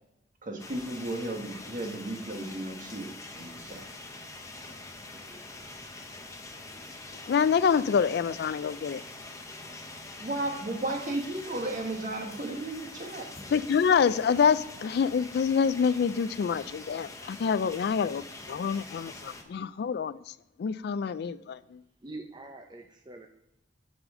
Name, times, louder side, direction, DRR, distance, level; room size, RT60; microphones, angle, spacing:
voice 1, 0.4-3.8 10.2-13.3, right 2 dB, 45° right, 3 dB, 1.3 m, -34 dB
sound 1, 0.6-19.4, left 2 dB, 20° left, 0.9 m, -44 dB
voice 2, 7.3-9.0 13.5-18.2 18.5-20.2 20.6-21.8, left 6 dB, 60° left, 16 dB, 0.3 m, -26 dB
voice 3, 22.0-23.3, right 2 dB, 25° right, 3 dB, 0.6 m, -44 dB
13.0 x 4.8 x 3.7 m, 0.86 s
head